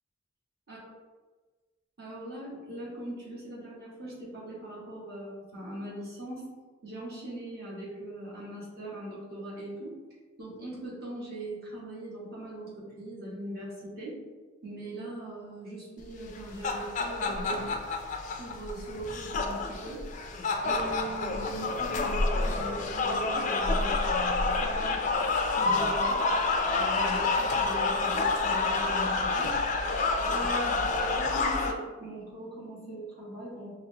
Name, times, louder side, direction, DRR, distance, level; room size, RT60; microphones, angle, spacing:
voice 1, 2.0-6.5 6.8-10.0 10.4-14.2 14.6-17.8 18.4-20.1 20.6-25.1 25.5-26.2 26.7-29.6 30.2-33.8, right 1 dB, 50° right, -7 dB, 1.4 m, -40 dB
sound 1, 16.3-31.7, left 3 dB, 40° left, 0.3 m, -28 dB
5.5 x 2.0 x 2.7 m, 1.3 s
head